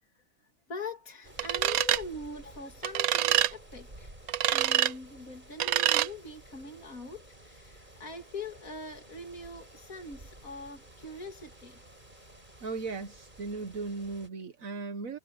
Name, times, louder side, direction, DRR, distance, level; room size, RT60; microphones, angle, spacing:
voice 1, 0.0-4.1 4.5-11.8, left 2 dB, 80° left, 3.1 m, -43 dB
sound 1, 1.2-14.3, right 1 dB, 35° right, 5.7 m, -53 dB
sound 2, 1.4-2.0 2.8-3.5 4.3-4.9 5.6-6.1, right 12 dB, 90° right, 1.2 m, -25 dB
voice 2, 12.6-15.2, right 4 dB, 70° right, 1.7 m, -37 dB
omnidirectional pair, 1.5 m